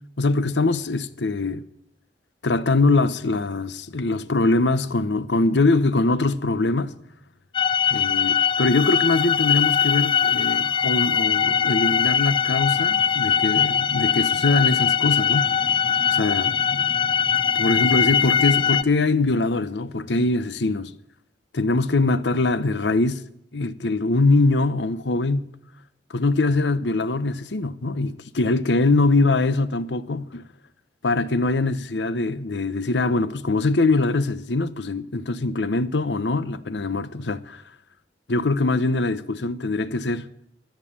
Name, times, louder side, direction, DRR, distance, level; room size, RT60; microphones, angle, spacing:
voice 1, 0.2-1.6 2.4-7.0 7.9-15.6 16.1-16.9 17.6-20.9 21.5-23.2 23.5-25.5 26.1-30.4 31.0-37.6 38.3-40.3, left 2 dB, 80° left, 0.8 m, -22 dB
sound 1, 7.5-18.8, left 8 dB, 30° left, 0.4 m, -21 dB
14.0 x 9.0 x 8.7 m
head